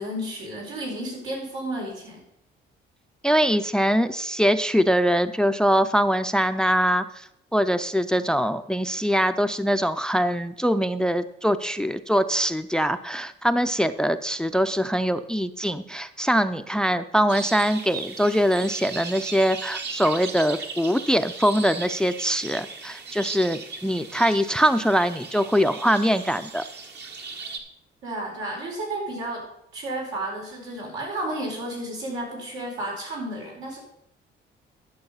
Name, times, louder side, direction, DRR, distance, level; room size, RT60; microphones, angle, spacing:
voice 1, 0.0-2.2 28.0-29.4 29.7-33.8, right 1 dB, 85° right, -3 dB, 4.6 m, -32 dB
voice 2, 3.2-26.6, equal, 5° left, 11 dB, 0.5 m, -23 dB
sound 1, 17.3-27.6, right 4 dB, 60° right, 1.5 m, -37 dB
11.5 x 6.4 x 5.6 m, 0.78 s
cardioid pair, 90°, 20 cm